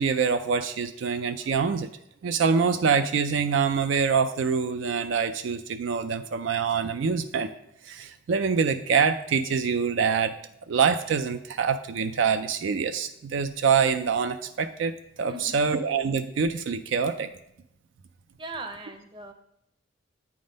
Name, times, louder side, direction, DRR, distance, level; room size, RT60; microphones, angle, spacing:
voice 1, 0.0-1.9 2.2-7.5 7.8-10.3 10.7-17.3, right 6 dB, 70° right, 9 dB, 0.4 m, -25 dB
voice 2, 15.3-15.7 18.4-19.3, right 2 dB, 25° right, 5 dB, 0.7 m, -39 dB
8.6 x 3.6 x 5.1 m, 0.78 s
head